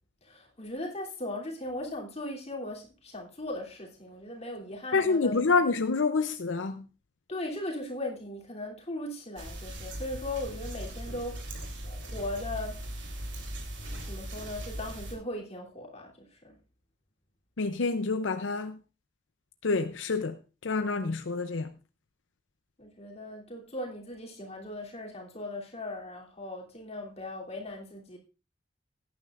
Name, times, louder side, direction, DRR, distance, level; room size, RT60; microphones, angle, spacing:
voice 1, 0.2-5.6 7.3-11.6 11.8-12.8 14.0-16.6 22.8-28.2, left 1 dB, 35° left, 3.1 m, -38 dB
voice 2, 4.9-6.8 17.6-18.8 19.6-21.7, left 4 dB, 80° left, 0.6 m, -28 dB
sound 1, 9.4-15.1, right 1 dB, 75° right, 3.2 m, -39 dB
17.0 x 9.6 x 2.5 m
head